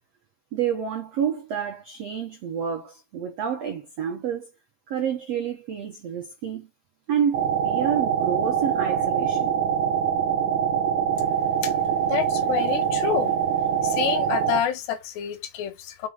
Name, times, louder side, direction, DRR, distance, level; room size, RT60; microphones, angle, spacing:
voice 1, 0.5-4.5 4.9-6.7 7.1-9.6, right 8 dB, 85° right, 1.4 m, -29 dB
sound 1, 7.3-14.6, right 8 dB, 70° right, 1.9 m, -24 dB
voice 2, 12.0-13.4 13.8-16.1, left 10 dB, 80° left, 3.2 m, -28 dB
6.2 x 5.7 x 5.0 m
omnidirectional pair, 4.9 m